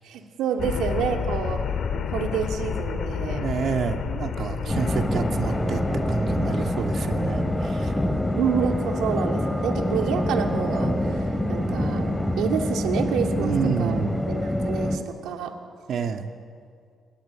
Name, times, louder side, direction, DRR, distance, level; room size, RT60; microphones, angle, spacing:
voice 1, 0.0-1.6 1.9-3.4 4.6-4.8 8.4-13.5 13.8-14.0 14.3-15.5, right 7 dB, 85° right, 3 dB, 2.5 m, -28 dB
sound 1, 0.6-8.1, left 7 dB, 60° left, 2.1 m, -31 dB
voice 2, 3.4-5.8 6.1-7.9 13.3-14.1 15.9-16.3, right 6 dB, 60° right, 4 dB, 2.5 m, -28 dB
sound 2, 4.7-15.0, left 1 dB, 10° left, 3.1 m, -26 dB
27.0 x 22.0 x 9.9 m, 2.2 s
cardioid pair, 90°, 0 cm